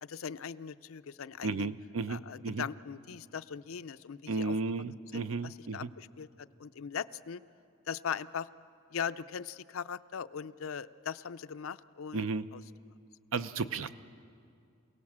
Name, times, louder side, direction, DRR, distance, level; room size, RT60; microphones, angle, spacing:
voice 1, 0.0-1.7 2.1-4.6 5.1-7.4 7.9-8.5 8.9-12.3 12.5-12.6, left 7 dB, 75° left, 13 dB, 0.5 m, -40 dB
voice 2, 1.4-2.7 4.3-5.9 12.1-12.5 13.3-13.9, right 4 dB, 70° right, 13 dB, 0.6 m, -34 dB
28.5 x 17.5 x 7.4 m, 2.5 s
head